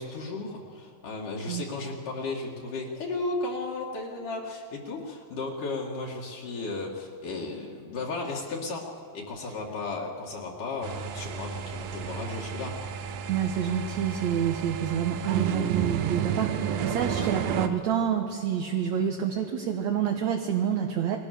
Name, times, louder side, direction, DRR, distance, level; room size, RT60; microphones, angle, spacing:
voice 1, 0.0-8.9 9.1-12.7 17.2-17.3, left 3 dB, 65° left, -3 dB, 3.7 m, -34 dB
sound 1, 10.8-17.7, right 8 dB, 80° right, 2.8 m, -32 dB
voice 2, 13.3-21.2, right 8 dB, 60° right, 3 dB, 2.3 m, -28 dB
28.5 x 21.5 x 6.8 m, 2.6 s
omnidirectional pair, 4.1 m